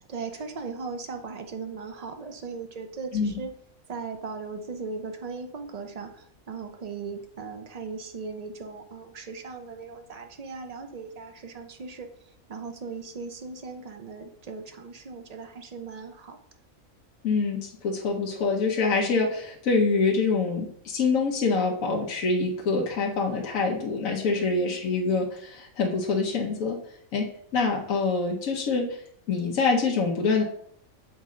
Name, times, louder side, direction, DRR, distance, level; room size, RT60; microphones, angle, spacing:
voice 1, 0.1-3.5 3.9-12.1 12.5-16.4 24.3-24.8, right 4 dB, 70° right, 6 dB, 0.3 m, -38 dB
voice 2, 17.2-26.8 27.1-27.3 27.5-29.0 29.3-30.4, left 4 dB, 75° left, -1 dB, 1.4 m, -25 dB
7.2 x 4.2 x 3.7 m, 0.68 s
omnidirectional pair, 1.4 m